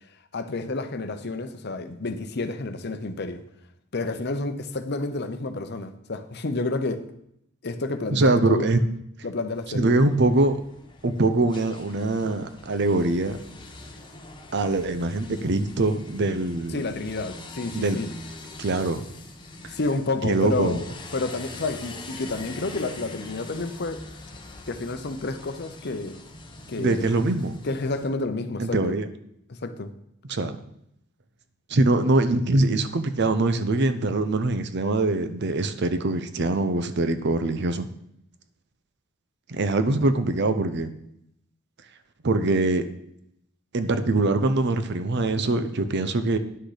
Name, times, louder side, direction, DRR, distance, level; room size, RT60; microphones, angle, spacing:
voice 1, 0.3-3.4 3.9-7.0 7.6-8.7 9.2-10.0 16.7-18.1 19.7-20.9 21.1-24.0 24.7-26.2 26.7-27.1 27.6-28.9 29.5-29.9, left 3 dB, 50° left, 9 dB, 0.8 m, -30 dB
voice 2, 8.1-8.8 9.7-10.6 11.0-13.4 14.5-16.8 17.7-18.0 18.6-19.0 20.2-20.8 26.8-27.5 28.6-29.1 30.3-30.6 31.7-37.9 39.5-40.9 42.2-42.8 43.7-46.4, right 2 dB, 55° right, 11 dB, 0.7 m, -23 dB
sound 1, 9.6-28.1, left 2 dB, 20° left, 1.0 m, -43 dB
10.0 x 6.4 x 5.0 m, 0.75 s
head